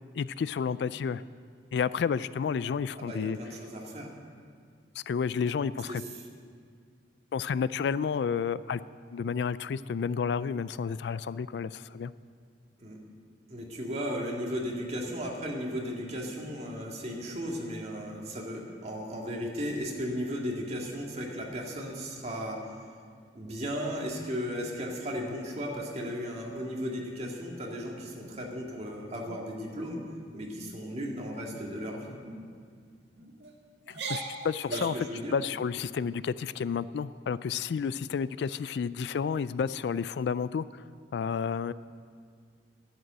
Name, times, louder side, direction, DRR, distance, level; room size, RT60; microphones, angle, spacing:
voice 1, 0.1-1.2 1.7-3.4 5.0-6.0 7.3-8.8 9.1-12.1 33.9-35.1 35.3-40.8 41.1-41.7, left 6 dB, 65° left, 17 dB, 0.3 m, -31 dB
voice 2, 3.0-4.1 5.9-6.0 12.8-13.0 13.5-22.7 23.3-30.0 30.3-32.2 34.7-35.3, equal, 35° right, -1 dB, 2.0 m, -35 dB
sound 1, 28.1-28.7 29.2-29.4 29.8-30.1 30.4-30.8 31.4-31.8 32.2-32.4 33.1-33.5 33.9-35.1, right 3 dB, 70° right, 2.0 m, -40 dB
11.5 x 8.1 x 9.9 m, 2.1 s
head